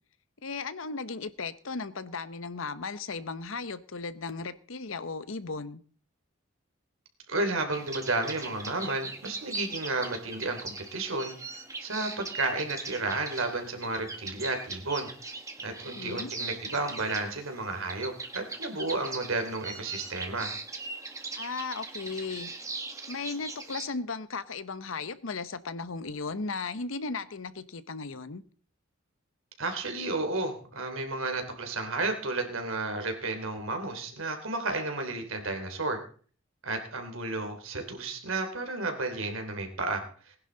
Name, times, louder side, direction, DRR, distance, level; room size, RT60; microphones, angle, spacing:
voice 1, 0.4-5.8 15.9-16.3 21.4-22.5 23.1-28.4, left 4 dB, 75° left, 0.9 m, -36 dB
voice 2, 7.3-11.4 11.8-15.1 15.6-20.5 29.6-36.0 36.6-40.4, right 2 dB, 80° right, 3.2 m, -32 dB
sound 1, 7.7-23.9, right 3 dB, 15° right, 1.5 m, -40 dB
19.5 x 11.0 x 3.9 m
head